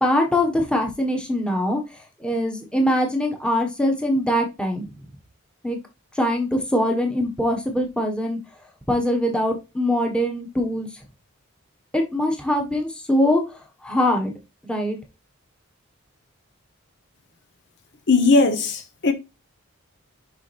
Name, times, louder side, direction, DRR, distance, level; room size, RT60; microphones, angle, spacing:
voice 1, 0.0-1.8 2.2-4.8 5.6-5.8 6.1-8.4 8.9-10.9 11.9-14.3 14.6-15.0, left 1 dB, 5° left, 1.5 m, -22 dB
voice 2, 18.1-19.1, left 3 dB, 55° left, 1.1 m, -18 dB
6.8 x 5.7 x 3.4 m
head